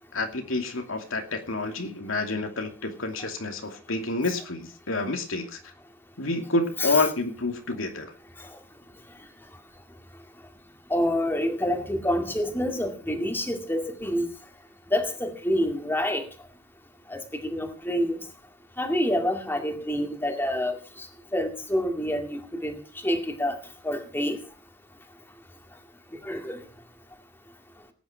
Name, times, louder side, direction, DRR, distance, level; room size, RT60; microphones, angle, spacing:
voice 1, 0.1-5.6 6.2-8.1, left 2 dB, 85° left, 2.7 m, -28 dB
voice 2, 10.9-14.3 14.9-16.3 17.1-18.2 18.8-21.1 21.3-23.6 23.8-24.4 26.2-26.6, left 1 dB, 10° left, 2.2 m, -27 dB
18.5 x 9.7 x 5.1 m
head